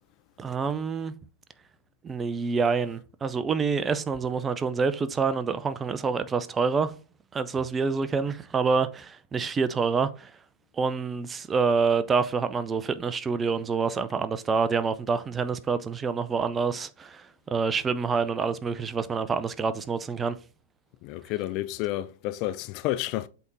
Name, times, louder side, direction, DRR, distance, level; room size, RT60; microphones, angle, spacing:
voice 1, 0.4-1.1 2.0-6.9 7.3-10.3 10.8-20.4, right 5 dB, 20° right, 0.6 m, -27 dB
voice 2, 21.0-23.3, left 15 dB, 40° left, 0.4 m, -30 dB
8.1 x 3.6 x 4.0 m
figure-of-eight pair, 100°, 0 cm